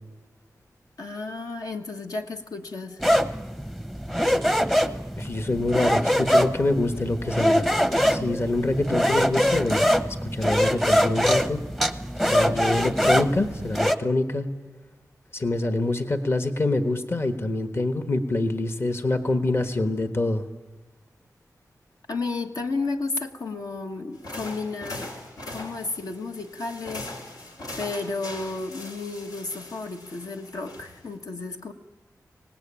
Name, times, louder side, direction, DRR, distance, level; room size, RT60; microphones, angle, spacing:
voice 1, 1.0-3.0 15.6-15.7 22.1-25.1 25.5-27.1 27.8-31.7, left 3 dB, 70° left, 4 dB, 1.4 m, -32 dB
sound 1, 3.0-14.0, equal, 5° left, 0.8 m, -23 dB
voice 2, 5.2-7.7 8.1-9.9 10.2-11.6 12.2-14.5 15.3-20.4, left 2 dB, 40° left, 7 dB, 1.3 m, -25 dB
sound 2, 24.1-31.2, left 1 dB, 90° left, 4.0 m, -40 dB
24.5 x 18.5 x 8.8 m, 1.2 s
wide cardioid pair, 125°, 6 cm